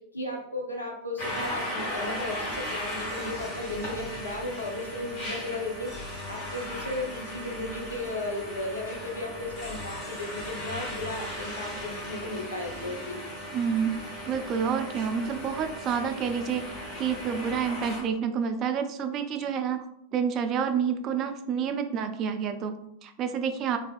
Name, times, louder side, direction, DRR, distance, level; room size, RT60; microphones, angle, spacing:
voice 1, 0.1-13.2, left 1 dB, 80° left, 0 dB, 0.7 m, -35 dB
sound 1, 1.2-18.0, left 1 dB, 40° left, 1.4 m, -37 dB
voice 2, 13.5-14.0 14.3-19.9 20.1-23.8, right 7 dB, 35° right, 8 dB, 0.3 m, -29 dB
3.3 x 2.6 x 2.4 m, 0.76 s
figure-of-eight pair, 90°, 0 cm